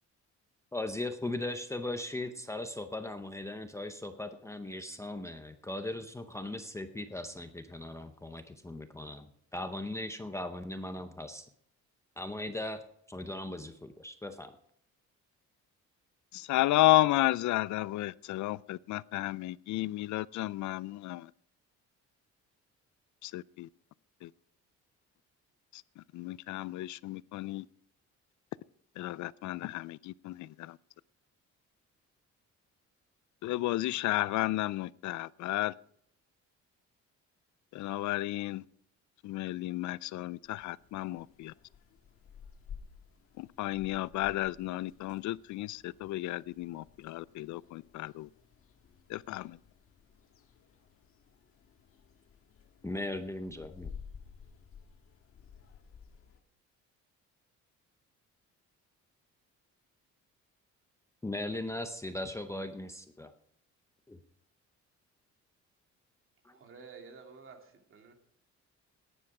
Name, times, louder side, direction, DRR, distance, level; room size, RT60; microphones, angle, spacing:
voice 1, 0.7-11.5 12.2-12.8 13.1-14.6 52.8-53.9 61.2-63.3 64.1-64.2 66.4-66.5, left 1 dB, 10° left, 0.7 m, -38 dB
voice 2, 16.3-21.3 23.2-23.7 24.2-24.3 25.7-27.7 29.0-30.8 33.4-35.7 37.7-38.6 39.2-41.5 43.4-48.3 49.1-49.6, left 17 dB, 75° left, 0.5 m, -32 dB
sound 1, 40.4-56.4, left 6 dB, 50° left, 1.6 m, -54 dB
voice 3, 66.5-68.1, right 5 dB, 45° right, 2.7 m, -51 dB
17.5 x 10.0 x 4.9 m
cardioid pair, 160°, 29 cm